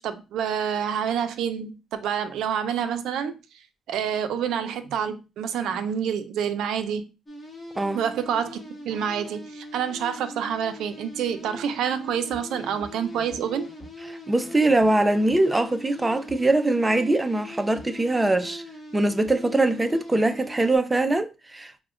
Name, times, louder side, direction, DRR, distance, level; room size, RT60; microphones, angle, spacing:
voice 1, 0.0-3.4 3.9-7.1 7.9-8.6 8.9-13.7, right 8 dB, 80° right, 0.4 m, -28 dB
sound 1, 7.3-20.8, left 1 dB, 25° left, 1.1 m, -42 dB
voice 2, 14.1-18.6 18.9-21.8, right 2 dB, 15° right, 0.4 m, -22 dB
4.5 x 2.1 x 2.4 m
cardioid pair, 90°, 0 cm